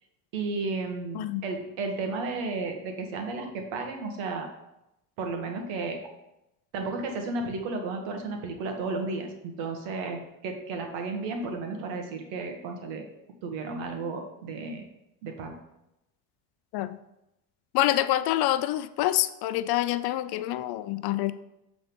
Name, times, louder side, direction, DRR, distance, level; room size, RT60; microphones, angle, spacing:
voice 1, 0.3-4.5 5.2-6.0 6.7-13.0 13.4-14.8 15.2-15.5, right 3 dB, 80° right, 1.6 m, -33 dB
voice 2, 17.7-21.3, left 14 dB, 60° left, 0.5 m, -26 dB
7.6 x 4.0 x 5.2 m
supercardioid pair, 110°, 45 cm